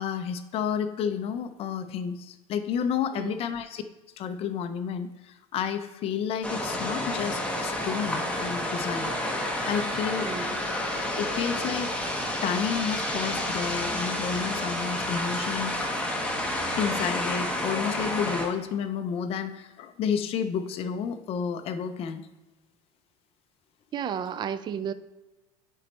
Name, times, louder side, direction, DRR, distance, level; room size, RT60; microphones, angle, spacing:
voice 1, 0.0-3.8 4.2-9.1 9.7-10.3 11.2-12.1 12.4-15.8 16.8-22.3, left 7 dB, 40° left, 8 dB, 0.5 m, -31 dB
sound 1, 6.4-18.5, left 1 dB, 10° left, 1.1 m, -30 dB
voice 2, 10.2-10.5 23.9-24.9, right 8 dB, 30° right, 12 dB, 0.4 m, -32 dB
9.8 x 4.2 x 3.1 m, 1.1 s
supercardioid pair, 125°, 15 cm